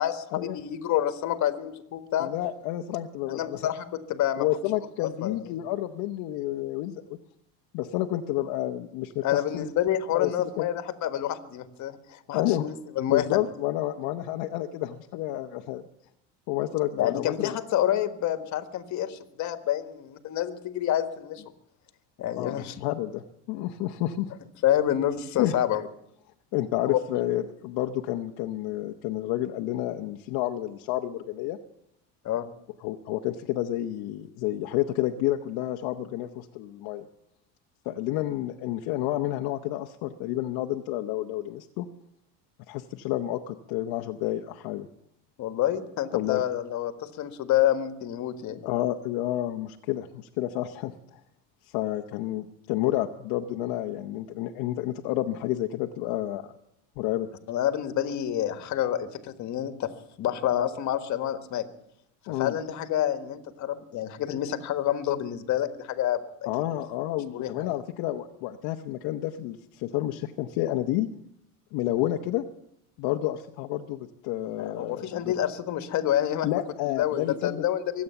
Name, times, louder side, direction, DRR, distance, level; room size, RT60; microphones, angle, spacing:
voice 1, 0.0-2.3 3.3-4.5 5.0-5.4 9.2-13.4 17.0-21.4 22.2-22.8 24.6-25.9 26.9-27.0 32.2-32.5 45.4-48.6 57.5-59.9 60.2-61.6 62.4-66.2 67.3-67.7 74.6-76.5 76.9-78.0, left 11 dB, 50° left, 9 dB, 1.6 m, -28 dB
voice 2, 2.2-3.6 4.4-7.2 7.7-9.7 10.1-10.7 12.3-12.7 13.1-15.8 16.5-17.5 22.4-24.3 25.4-25.5 26.5-31.6 32.8-37.1 37.8-41.9 42.7-44.9 46.1-46.4 48.6-51.2 51.7-56.5 57.0-57.3 62.3-62.5 66.5-71.1 71.7-72.4 73.0-75.4 76.4-77.6, left 14 dB, 65° left, 4 dB, 0.9 m, -30 dB
23.0 x 8.6 x 6.9 m, 0.77 s
supercardioid pair, 120°, 38 cm